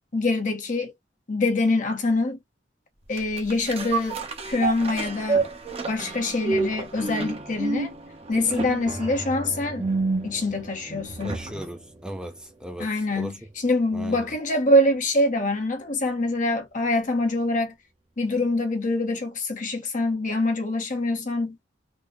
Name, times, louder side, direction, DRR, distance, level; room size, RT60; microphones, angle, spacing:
voice 1, 0.1-0.9 1.3-2.4 3.1-4.2 4.5-5.4 5.9-7.9 8.3-9.9 10.2-11.4 12.8-17.7 18.2-21.6, left 2 dB, 45° left, 0.9 m, -25 dB
sound 1, 3.1-11.7 12.1-12.2, right 3 dB, 35° right, 0.9 m, -29 dB
voice 2, 11.2-13.4 13.9-14.3, right 1 dB, 5° right, 0.6 m, -37 dB
3.8 x 2.1 x 3.7 m
head